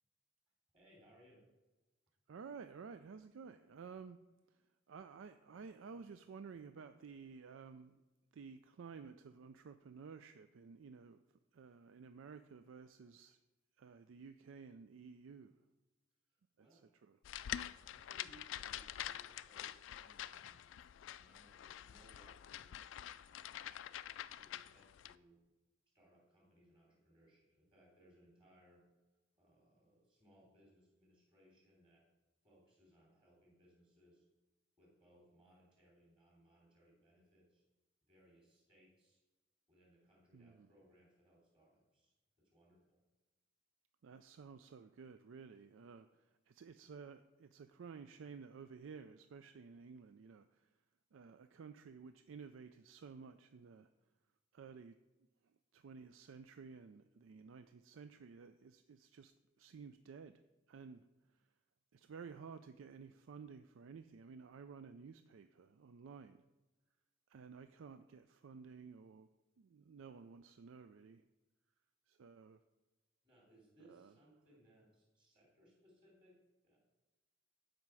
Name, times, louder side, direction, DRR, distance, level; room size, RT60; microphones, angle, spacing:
voice 1, 0.7-1.4 16.3-16.9 17.8-20.6 21.1-22.8 23.2-23.7 24.3-25.4 25.9-28.9 29.3-32.1 32.4-34.3 34.8-37.6 38.1-39.2 39.7-43.0 73.2-76.8, equal, 25° right, -3 dB, 3.3 m, -68 dB
voice 2, 2.3-4.2 4.9-8.0 8.3-11.2 11.5-13.4 13.8-15.5 16.6-17.2 40.3-40.7 44.0-50.7 51.1-53.9 54.5-55.0 55.7-60.3 60.7-61.1 61.9-66.4 67.3-69.3 69.6-71.2 72.1-72.6 73.9-74.1, right 5 dB, 85° right, 10 dB, 0.4 m, -54 dB
sound 1, 17.2-25.1, left 11 dB, 75° left, 0.3 m, -47 dB
13.0 x 5.2 x 4.7 m, 1.1 s
head